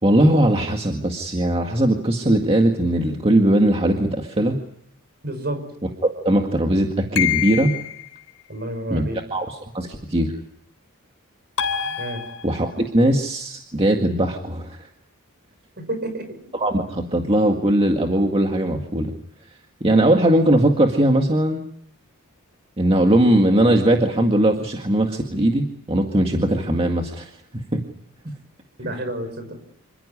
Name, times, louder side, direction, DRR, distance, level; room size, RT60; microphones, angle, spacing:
voice 1, 0.0-4.6 6.2-7.7 8.9-10.3 12.4-14.8 16.5-19.1 19.8-21.6 22.8-27.8 28.8-28.9, right 1 dB, 25° right, 3 dB, 1.9 m, -19 dB
voice 2, 5.2-5.6 8.5-9.2 12.0-12.2 15.8-16.4 28.8-29.5, right 1 dB, 50° right, 8 dB, 6.1 m, -29 dB
sound 1, 7.2-8.1 11.6-12.8, left 9 dB, 80° left, 3.5 m, -25 dB
27.5 x 15.5 x 9.9 m, 0.69 s
head